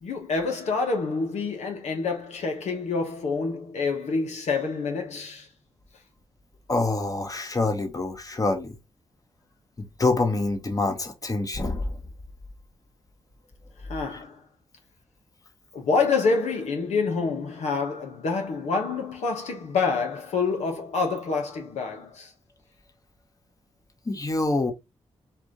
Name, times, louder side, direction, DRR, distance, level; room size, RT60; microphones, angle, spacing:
voice 1, 0.0-5.5 13.9-14.4 15.7-22.3, left 4 dB, 75° left, 1.2 m, -27 dB
voice 2, 6.7-8.8 10.0-11.8 14.1-14.2 24.1-24.7, left 2 dB, 30° left, 1.3 m, -26 dB
4.8 x 2.7 x 3.6 m
supercardioid pair, 50°, 12 cm